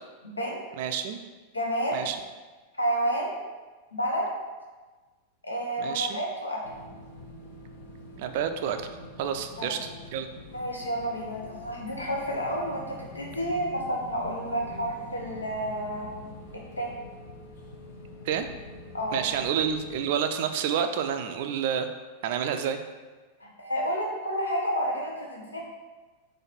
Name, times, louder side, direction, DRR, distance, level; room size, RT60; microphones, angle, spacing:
voice 1, 0.2-0.6 1.5-2.0 2.8-3.4 3.9-4.3 5.4-6.8 9.6-9.8 10.5-16.2 16.5-16.9 18.9-19.3 23.4-25.6, equal, 80° left, -1 dB, 0.8 m, -30 dB
voice 2, 0.8-1.2 1.9-2.2 5.8-6.2 8.2-8.8 9.2-10.3 18.3-18.5 19.1-21.9 22.2-22.8, right 8 dB, 50° right, 8 dB, 0.3 m, -29 dB
sound 1, 6.6-20.1, left 2 dB, 55° left, 0.6 m, -45 dB
4.0 x 2.6 x 4.3 m, 1.3 s
figure-of-eight pair, 90°, 0 cm